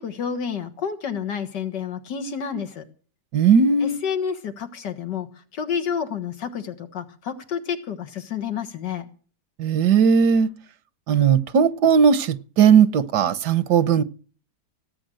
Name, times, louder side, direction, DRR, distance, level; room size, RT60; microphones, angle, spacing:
voice 1, 0.0-2.8 3.8-5.3 5.5-9.1, left 7 dB, 85° left, 2.1 m, -29 dB
voice 2, 3.3-4.0 9.6-10.5 11.1-14.0, right 7 dB, 75° right, 1.5 m, -17 dB
18.0 x 8.6 x 7.7 m
omnidirectional pair, 1.8 m